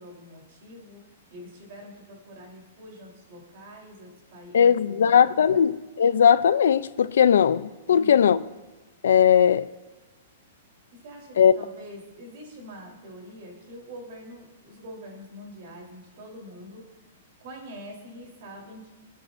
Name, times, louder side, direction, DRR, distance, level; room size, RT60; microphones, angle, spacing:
voice 1, 0.0-5.7 7.8-8.4 10.9-17.1 17.4-18.9, equal, 50° right, 3.6 m, -45 dB
voice 2, 4.5-8.4 9.0-9.7 11.4-11.5, left 8 dB, 85° left, 0.4 m, -19 dB
23.5 x 8.8 x 2.6 m
hypercardioid pair, 160°, 0 cm